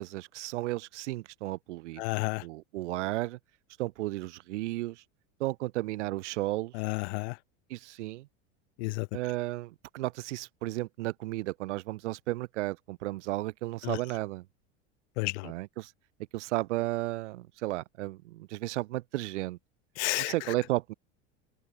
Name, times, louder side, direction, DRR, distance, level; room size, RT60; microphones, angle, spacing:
voice 1, 0.0-2.0 2.4-3.4 3.8-5.0 5.4-6.7 7.7-8.3 9.1-14.5 15.4-15.9 16.3-19.6 20.2-20.9, right 18 dB, 80° right, 5.7 m, -33 dB
voice 2, 2.0-2.4 6.7-7.4 8.8-9.1 13.8-14.0 15.2-15.5 20.0-20.3, left 26 dB, 70° left, 2.2 m, -31 dB
open air
supercardioid pair, 120°, 35 cm